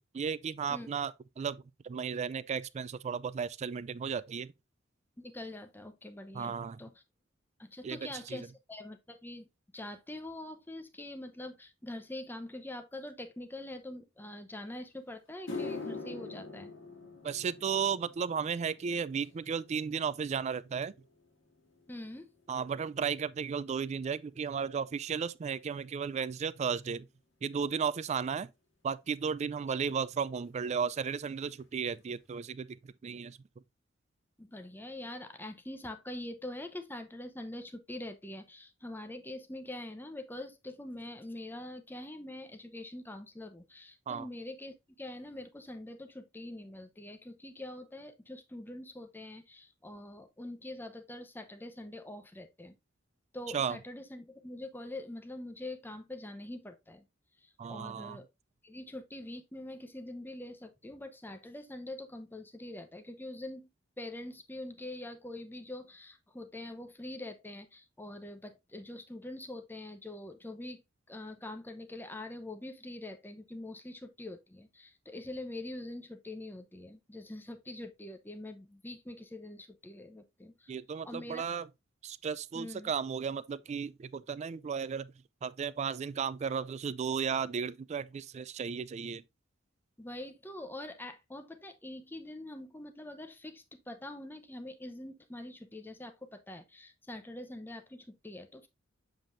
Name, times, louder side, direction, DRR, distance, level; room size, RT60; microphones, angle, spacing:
voice 1, 0.1-4.5 6.3-6.8 7.8-8.0 8.3-8.4 17.2-20.9 22.5-27.1 27.4-28.5 28.8-32.8 33.0-33.4 44.1-44.3 53.5-53.8 57.6-58.2 80.7-81.7 82.0-85.1 85.4-89.2, right 6 dB, 35° right, 0.3 m, -34 dB
voice 2, 5.2-7.0 7.6-9.5 9.7-16.7 21.9-22.3 34.4-52.8 53.3-57.0 57.4-58.3 58.6-63.7 64.0-70.8 71.1-80.8 81.0-81.4 82.5-82.9 90.0-98.7, left 1 dB, 10° left, 0.7 m, -44 dB
sound 1, 14.7-14.8 15.3-23.8 24.1-24.5 25.3-25.4 28.1-28.2 29.8-29.9 30.1-30.4 30.6-31.2 31.6-31.7 32.2-32.3, left 3 dB, 80° left, 2.3 m, -46 dB
7.4 x 5.1 x 2.5 m
head